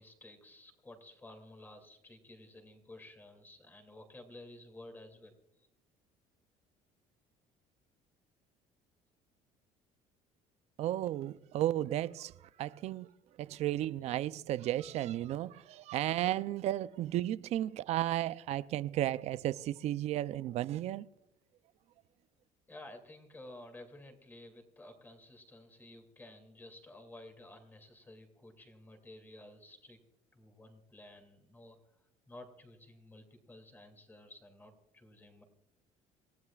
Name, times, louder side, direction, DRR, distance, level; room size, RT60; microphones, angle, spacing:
voice 1, 0.0-5.7 22.7-30.0 30.3-35.4, left 1 dB, 15° left, 2.6 m, -53 dB
voice 2, 10.8-12.3 12.6-13.1 13.4-21.1, right 13 dB, 50° right, 0.5 m, -34 dB
28.5 x 16.0 x 2.4 m
cardioid pair, 150°, 14 cm